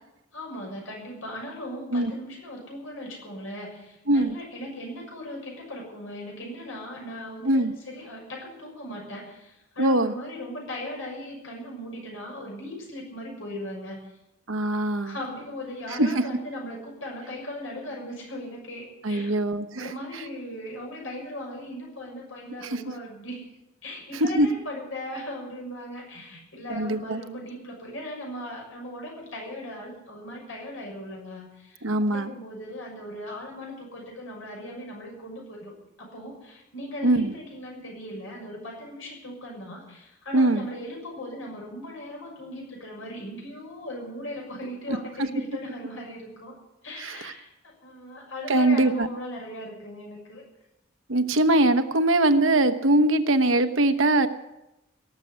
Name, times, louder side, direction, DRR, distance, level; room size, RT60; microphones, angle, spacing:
voice 1, 0.3-14.1 15.0-19.3 19.8-23.5 23.8-35.7 36.0-46.5 46.8-50.4, left 1 dB, 80° left, -1 dB, 6.7 m, -38 dB
voice 2, 9.8-10.1 14.5-15.2 15.9-16.1 19.0-19.9 22.6-22.8 24.1-24.5 26.7-27.2 31.8-32.3 37.0-37.3 40.3-40.7 44.9-45.0 47.0-47.3 48.5-49.1 51.1-54.3, right 1 dB, 80° right, 9 dB, 1.1 m, -22 dB
18.0 x 7.6 x 9.7 m, 0.94 s
head